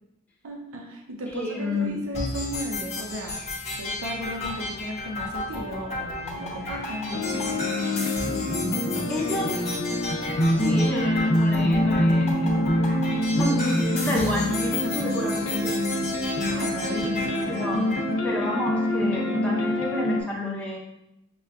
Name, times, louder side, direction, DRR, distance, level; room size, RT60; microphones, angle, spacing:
voice 1, 0.4-7.2 16.4-17.5, equal, 85° right, 1 dB, 0.6 m, -35 dB
voice 2, 1.3-2.0 9.1-9.6 10.6-12.7 13.3-15.9 17.5-20.8, left 1 dB, 5° left, -4 dB, 0.6 m, -30 dB
sound 1, 2.1-18.1, left 2 dB, 35° left, 0.9 m, -34 dB
sound 2, 7.1-20.2, left 1 dB, 75° left, 0.6 m, -25 dB
6.0 x 2.2 x 2.3 m, 0.89 s
head